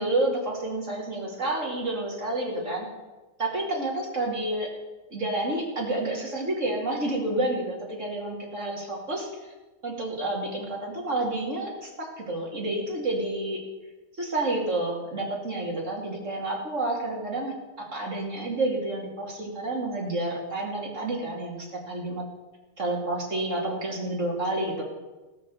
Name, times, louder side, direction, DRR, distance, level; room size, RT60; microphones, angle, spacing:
voice 1, 0.0-2.9 3.4-4.7 5.1-9.5 9.8-13.6 14.2-22.2 22.8-24.8, right 2 dB, 85° right, -2 dB, 3.1 m, -29 dB
15.5 x 6.8 x 7.1 m, 1.2 s
omnidirectional pair, 1.3 m